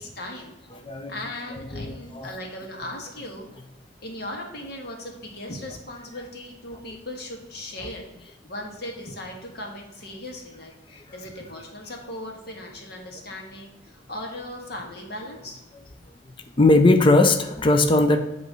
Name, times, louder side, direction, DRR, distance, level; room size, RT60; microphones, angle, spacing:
voice 1, 0.0-0.6 1.1-3.5 4.0-15.6, left 1 dB, 65° left, 1 dB, 1.5 m, -38 dB
voice 2, 0.7-1.2 1.6-2.3 6.2-6.3 7.8-7.9 15.7-15.8 16.6-18.2, left 2 dB, 30° left, 6 dB, 0.5 m, -19 dB
8.1 x 3.1 x 6.0 m, 0.97 s
head